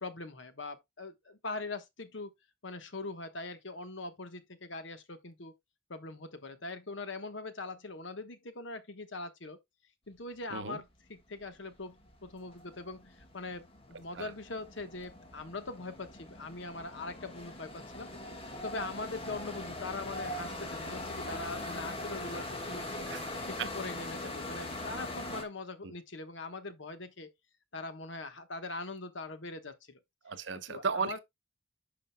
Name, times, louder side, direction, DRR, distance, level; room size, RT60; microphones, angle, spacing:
voice 1, 0.0-2.3 2.6-5.5 5.9-9.6 10.1-18.1 18.6-23.1 23.5-27.3 27.7-30.0 30.5-31.2, left 3 dB, 70° left, 1.2 m, -42 dB
sound 1, 11.2-11.3 11.6-25.4, left 1 dB, 30° left, 1.4 m, -41 dB
voice 2, 30.2-31.2, right 5 dB, 65° right, 0.7 m, -35 dB
11.5 x 5.0 x 2.2 m
head